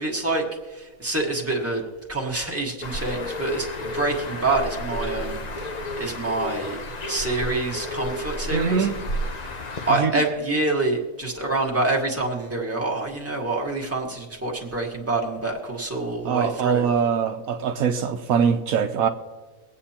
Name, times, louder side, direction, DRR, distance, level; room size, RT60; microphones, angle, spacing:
voice 1, 0.0-1.8 2.1-5.7 5.9-6.8 7.1-8.9 9.9-16.8, right 2 dB, 10° right, 1.7 m, -26 dB
Bird, 2.8-9.9, left 1 dB, 35° left, 0.8 m, -32 dB
voice 2, 8.5-9.0 9.9-10.1 16.2-19.1, right 7 dB, 75° right, 1.1 m, -23 dB
23.5 x 8.5 x 2.9 m
omnidirectional pair, 1.5 m